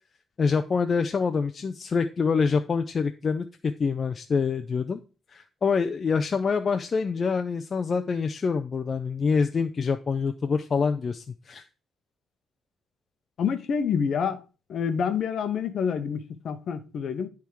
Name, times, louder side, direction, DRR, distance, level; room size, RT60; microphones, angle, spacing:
voice 1, 0.4-5.0 5.3-11.6, left 5 dB, 30° left, 0.4 m, -26 dB
voice 2, 13.4-14.4 14.7-17.3, left 7 dB, 50° left, 0.8 m, -27 dB
10.0 x 3.5 x 4.6 m
cardioid pair, 160°, 0 cm